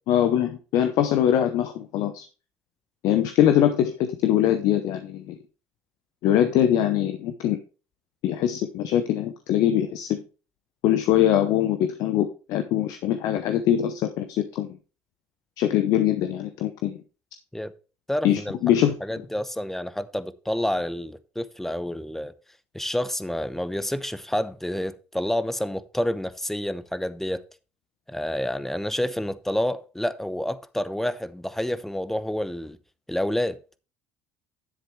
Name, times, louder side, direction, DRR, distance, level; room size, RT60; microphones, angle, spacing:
voice 1, 0.1-2.3 3.0-5.4 6.2-7.6 8.2-10.2 10.8-14.7 15.6-17.0 18.2-18.9, left 11 dB, 70° left, 0.8 m, -22 dB
voice 2, 18.1-18.6 19.0-22.3 22.7-27.4 28.1-32.8 33.1-33.6, left 1 dB, 5° left, 0.8 m, -28 dB
10.0 x 7.7 x 3.2 m
hypercardioid pair, 65°, 7 cm